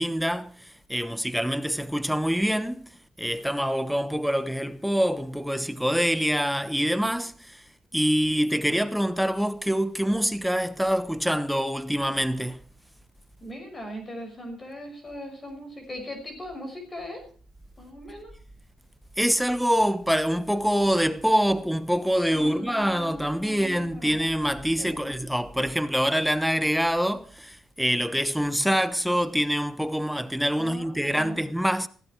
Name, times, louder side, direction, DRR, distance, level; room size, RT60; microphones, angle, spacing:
voice 1, 0.0-2.9 3.2-7.6 7.9-12.6 19.2-31.9, equal, ahead, 1.1 m, -25 dB
voice 2, 13.4-17.2 17.8-18.3 22.3-24.2 24.8-25.1 30.6-31.4, equal, 25° left, 6.1 m, -39 dB
16.0 x 15.5 x 4.6 m
cardioid pair, 90°, 0 cm